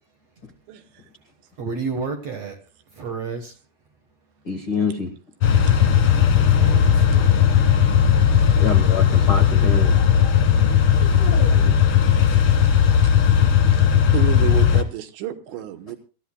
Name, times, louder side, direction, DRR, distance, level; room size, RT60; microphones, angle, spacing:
voice 1, 1.6-2.6 2.9-3.5 6.3-7.3, right 4 dB, 65° right, 1.6 m, -31 dB
voice 2, 4.4-5.1 6.4-6.5 8.6-11.8, left 5 dB, 85° left, 1.1 m, -28 dB
sound 1, 5.4-14.8, left 8 dB, 60° left, 1.4 m, -16 dB
voice 3, 14.1-16.0, right 11 dB, 85° right, 3.3 m, -30 dB
26.5 x 14.0 x 2.2 m
omnidirectional pair, 4.9 m